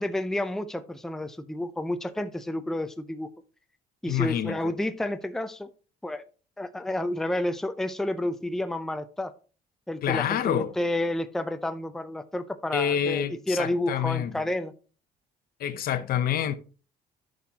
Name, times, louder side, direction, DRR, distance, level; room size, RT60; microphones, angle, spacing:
voice 1, 0.0-3.3 4.0-5.7 6.0-6.2 6.6-9.3 9.9-14.7, left 1 dB, ahead, 0.5 m, -30 dB
voice 2, 4.1-4.7 10.0-10.7 12.7-14.3 15.6-16.5, left 9 dB, 60° left, 0.8 m, -27 dB
11.0 x 6.3 x 2.8 m
cardioid pair, 110°, 17 cm